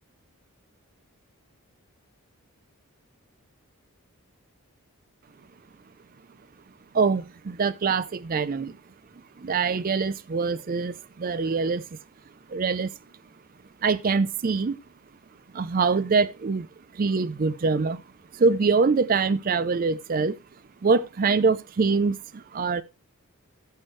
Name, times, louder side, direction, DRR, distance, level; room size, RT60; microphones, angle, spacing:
voice 1, 6.9-8.7 9.4-11.8 12.5-12.9 13.8-14.8 15.5-16.7 16.9-18.0 18.3-20.4 20.8-22.8, right 4 dB, 40° right, 0.4 m, -24 dB
14.0 x 6.4 x 3.1 m
head